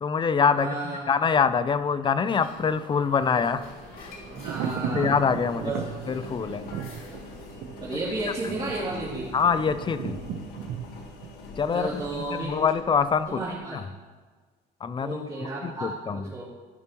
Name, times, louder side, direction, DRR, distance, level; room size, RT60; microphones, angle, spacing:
voice 1, 0.0-0.7 1.1-3.7 4.0-4.1 4.9-5.7 6.1-6.6 9.3-10.2 11.6-13.4 13.7-13.8 14.8-16.3, left 6 dB, 30° left, 13 dB, 0.5 m, -25 dB
voice 2, 0.5-1.2 4.3-5.1 5.6-5.8 6.2-6.3 7.8-9.2 11.7-12.6 13.3-13.8 15.0-16.4, right 2 dB, 30° right, -9 dB, 2.9 m, -33 dB
Thunder, 1.5-12.4 12.7-12.8, right 7 dB, 80° right, 0.8 m, -38 dB
sound 1, 2.4-7.6, left 3 dB, 60° left, 2.9 m, -48 dB
Engine, 3.6-13.6, left 2 dB, 80° left, 1.5 m, -45 dB
14.5 x 5.9 x 3.0 m, 1.4 s
cardioid pair, 110°, 17 cm